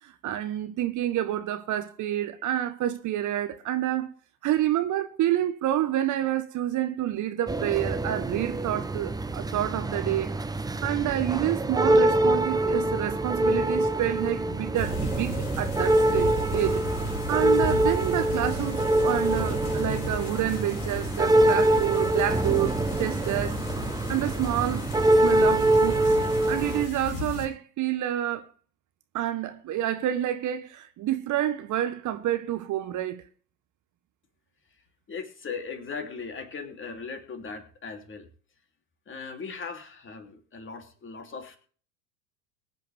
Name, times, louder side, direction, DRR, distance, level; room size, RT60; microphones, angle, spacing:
voice 1, 0.0-4.1 4.4-10.4 10.8-16.8 17.3-23.6 24.1-26.2 26.5-28.5 29.1-33.2, right 12 dB, 40° right, 1.2 m, -28 dB
sound 1, 7.5-26.9, right 1 dB, 10° right, 0.9 m, -25 dB
sound 2, 14.7-27.5, left 2 dB, 70° left, 5.1 m, -36 dB
voice 2, 35.1-38.3 39.1-41.6, left 5 dB, 25° left, 3.2 m, -38 dB
22.0 x 9.1 x 3.5 m
hypercardioid pair, 80°, 44 cm